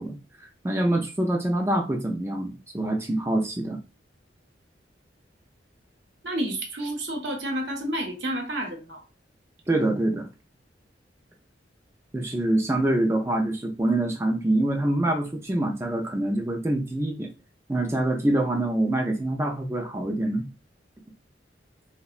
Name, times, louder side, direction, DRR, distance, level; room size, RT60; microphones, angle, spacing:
voice 1, 0.0-3.8 9.7-10.3 12.1-17.3 17.7-20.5, right 1 dB, 15° right, 1 dB, 0.3 m, -25 dB
voice 2, 6.2-9.0, right 1 dB, 65° right, 3 dB, 0.7 m, -30 dB
3.6 x 2.1 x 2.3 m, 0.30 s
head